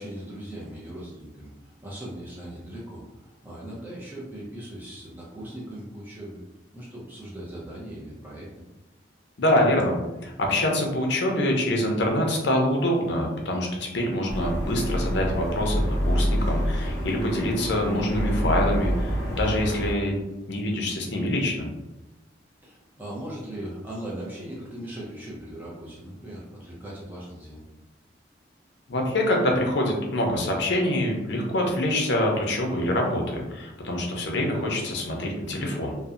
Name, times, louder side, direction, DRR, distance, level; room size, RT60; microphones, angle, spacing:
voice 1, 0.0-6.4 6.7-8.5 22.6-27.6, right 1 dB, 10° right, -6 dB, 0.4 m, -39 dB
voice 2, 9.4-10.0 10.2-20.1 20.5-21.7 28.9-35.9, left 1 dB, 70° left, 0 dB, 0.6 m, -25 dB
sound 1, 14.3-19.9, equal, 5° left, 1.1 m, -27 dB
2.7 x 2.1 x 2.4 m, 1.0 s
head